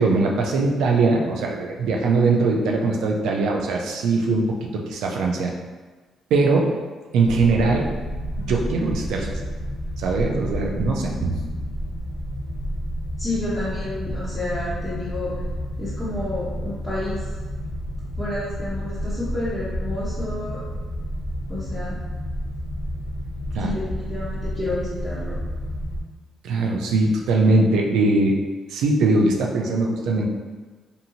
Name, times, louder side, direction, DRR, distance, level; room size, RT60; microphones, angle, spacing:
voice 1, 0.0-4.6 4.9-5.5 6.3-6.7 7.1-7.8 8.4-9.3 10.0-11.4 23.5-23.7 26.4-28.4 28.7-30.3, right 3 dB, 85° right, 0 dB, 0.4 m, -21 dB
sound 1, 7.2-26.0, equal, 75° left, 0.5 m, -30 dB
voice 2, 13.2-15.3 15.8-17.2 18.2-20.6 21.5-22.0 23.6-25.4, left 2 dB, 5° right, -13 dB, 1.1 m, -30 dB
2.7 x 2.6 x 2.8 m, 1.3 s
cardioid pair, 90°, 0 cm